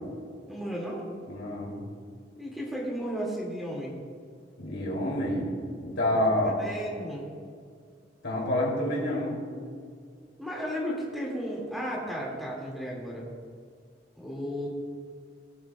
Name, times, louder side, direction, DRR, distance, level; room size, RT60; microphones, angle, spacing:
voice 1, 0.5-1.0 2.4-3.9 6.3-7.3 10.4-13.3 14.2-14.7, equal, ahead, -4 dB, 2.2 m, -34 dB
voice 2, 1.3-1.7 4.6-5.5 5.8-6.6 8.2-9.4, left 1 dB, 80° left, -2 dB, 2.9 m, -28 dB
18.0 x 8.7 x 2.3 m, 2.1 s
head